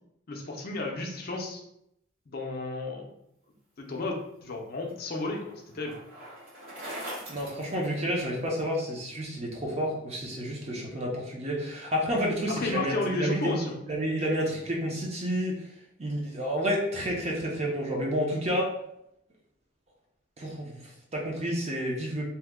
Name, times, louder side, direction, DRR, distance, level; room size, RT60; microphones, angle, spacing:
voice 1, 0.3-1.6 2.3-3.1 3.8-6.0 12.6-13.8, left 2 dB, 50° left, 1 dB, 0.5 m, -32 dB
Bicycle, 4.2-8.6, right 1 dB, 80° right, 1.5 m, -43 dB
voice 2, 7.3-15.6 16.0-18.7 20.4-22.2, equal, 30° right, -2 dB, 0.6 m, -30 dB
2.8 x 2.2 x 3.5 m, 0.80 s
head